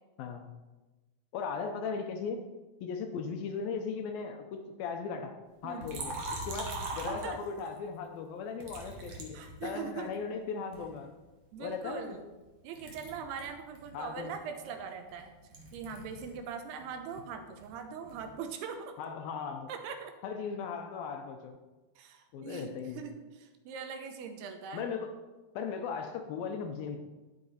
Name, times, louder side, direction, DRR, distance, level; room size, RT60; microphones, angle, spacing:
voice 1, 0.2-0.5 1.3-2.4 2.8-5.3 5.6-11.1 11.6-12.2 13.9-14.3 19.0-19.7 20.2-21.6 22.3-23.0 24.7-25.2 25.6-27.0, left 5 dB, 75° left, 5 dB, 2.3 m, -37 dB
Liquid, 5.8-7.8 8.6-10.1 10.7-12.5 12.7-16.4 16.7-18.3, right 2 dB, 55° right, 1.9 m, -42 dB
voice 2, 9.3-10.1 11.5-12.2 12.6-15.3 15.7-19.0 19.7-20.1 22.0-24.8, right 6 dB, 80° right, 6 dB, 2.9 m, -41 dB
11.5 x 7.7 x 4.2 m, 1.2 s
omnidirectional pair, 4.7 m